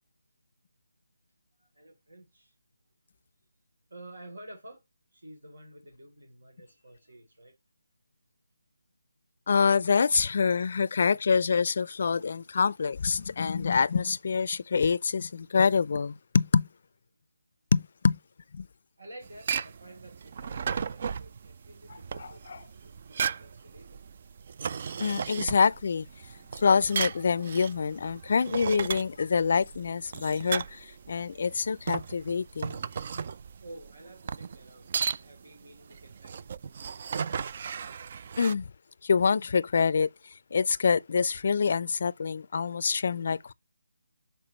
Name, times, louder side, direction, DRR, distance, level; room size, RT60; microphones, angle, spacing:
voice 1, 1.6-2.5 3.9-4.8 5.1-7.6 19.0-24.1 33.6-37.1 37.8-38.0, right 1 dB, 85° right, 3.2 m, -51 dB
voice 2, 9.5-16.7 17.7-18.2 18.5-18.7 22.2-22.6 25.0-26.1 26.6-32.8 38.4-38.7 39.0-40.1 40.5-43.5, left 5 dB, 50° left, 0.4 m, -26 dB
moving rock holds in bucket, 19.2-38.5, right 6 dB, 40° right, 0.3 m, -36 dB
6.8 x 4.5 x 3.0 m
figure-of-eight pair, 165°, 0 cm